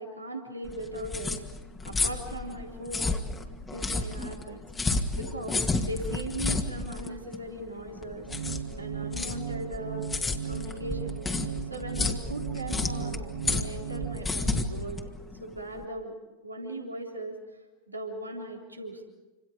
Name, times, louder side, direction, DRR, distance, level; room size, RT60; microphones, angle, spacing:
voice 1, 0.0-1.4 1.8-3.3 3.7-4.6 5.1-8.3 8.8-10.1 10.4-11.3 11.7-15.1 15.4-16.1 16.4-17.4 17.9-19.0, right 1 dB, 85° right, 1 dB, 3.7 m, -38 dB
sound 1, 0.6-15.8, left 3 dB, 15° left, 2.1 m, -31 dB
sound 2, 8.3-14.3, right 8 dB, 65° right, 1.0 m, -37 dB
28.5 x 26.5 x 5.2 m, 1.1 s
figure-of-eight pair, 90°, 0 cm